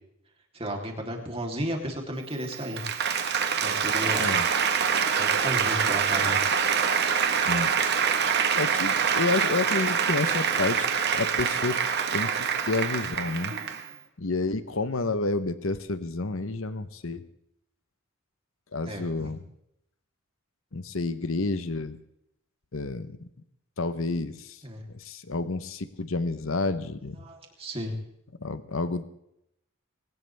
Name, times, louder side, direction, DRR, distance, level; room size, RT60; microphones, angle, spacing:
voice 1, 0.5-2.8 3.6-4.3 5.2-6.4 18.8-19.3 24.6-24.8 27.2-28.0, equal, 25° right, 1 dB, 3.4 m, -33 dB
Applause, 2.4-13.9, right 6 dB, 50° right, 1.5 m, -25 dB
voice 2, 7.4-7.7 8.5-10.9 11.1-11.8 12.1-13.5 14.2-17.2 18.7-19.4 20.7-22.0 22.7-23.3 23.8-24.6 24.9-27.2 28.4-29.0, left 3 dB, 70° left, 12 dB, 1.0 m, -30 dB
21.0 x 19.0 x 3.5 m, 0.79 s
head